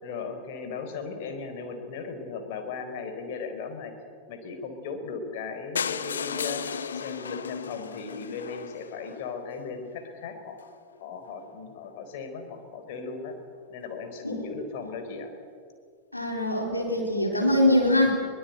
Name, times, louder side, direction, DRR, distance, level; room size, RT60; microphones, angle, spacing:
voice 1, 0.0-3.9 4.3-6.6 6.9-10.6 11.0-13.4 13.7-15.3 18.1-18.2, left 5 dB, 50° left, 6 dB, 4.1 m, -37 dB
sound 1, 5.8-9.6 10.3-10.4 10.6-10.7 11.0-11.1 11.3-11.4, left 7 dB, 70° left, 0.9 m, -34 dB
voice 2, 16.1-18.2, left 1 dB, 85° left, 1 dB, 3.8 m, -23 dB
22.5 x 20.5 x 9.2 m, 2.2 s
figure-of-eight pair, 90°, 0 cm